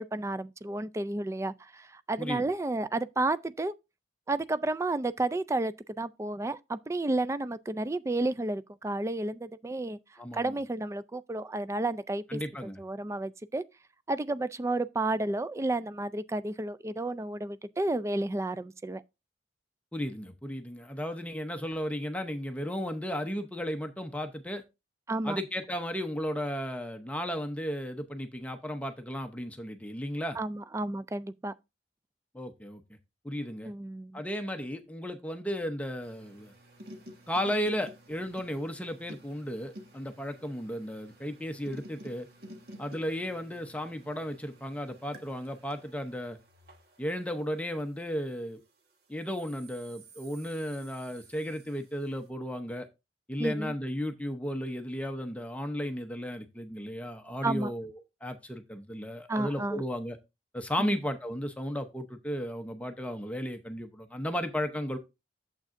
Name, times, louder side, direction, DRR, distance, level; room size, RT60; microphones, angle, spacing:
voice 1, 0.0-3.7 4.3-10.0 10.3-12.4 12.8-13.6 14.1-19.0 25.1-25.4 30.4-31.5 33.6-34.2 53.4-53.7 57.4-57.7 59.3-59.8 60.8-60.9, right 2 dB, 15° right, 0.3 m, -31 dB
voice 2, 10.2-10.5 12.3-12.8 19.9-24.6 25.2-30.4 32.3-32.8 33.2-33.7 34.1-36.5 37.3-42.3 42.8-46.4 47.0-48.6 49.1-52.9 53.3-57.9 58.2-60.2 60.5-65.0, equal, 10° left, 0.7 m, -34 dB
sound 1, 36.0-48.6 49.2-52.1, right 1 dB, 60° right, 1.5 m, -52 dB
8.8 x 7.5 x 2.5 m
head